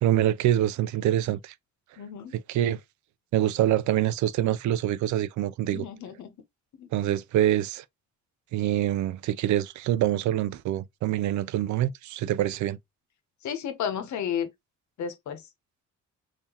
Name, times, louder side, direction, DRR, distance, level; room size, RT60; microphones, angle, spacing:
voice 1, 0.0-1.5 2.3-2.8 3.3-5.9 6.9-7.8 8.5-12.8, right 12 dB, 75° right, 0.5 m, -25 dB
voice 2, 2.0-2.3 5.7-6.3 6.8-6.9 13.4-14.5 15.0-15.4, left 8 dB, 70° left, 1.0 m, -32 dB
3.7 x 2.7 x 2.9 m
cardioid pair, 90°, 30 cm